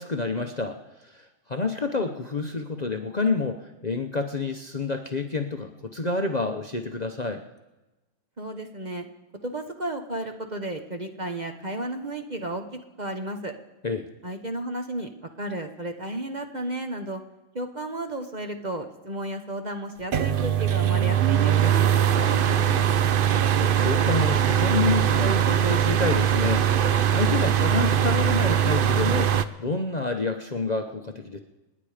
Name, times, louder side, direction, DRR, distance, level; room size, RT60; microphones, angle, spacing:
voice 1, 0.0-7.4 13.8-14.1 22.1-22.9 23.6-29.3 29.6-31.4, left 3 dB, 35° left, 5 dB, 0.9 m, -29 dB
voice 2, 8.4-9.1 9.4-13.5 14.2-15.1 15.4-17.2 17.5-21.7, right 1 dB, 35° right, 5 dB, 1.1 m, -33 dB
sound 1, 20.1-29.4, right 10 dB, 55° right, 0.6 m, -21 dB
28.5 x 9.8 x 5.0 m, 1.0 s
omnidirectional pair, 1.5 m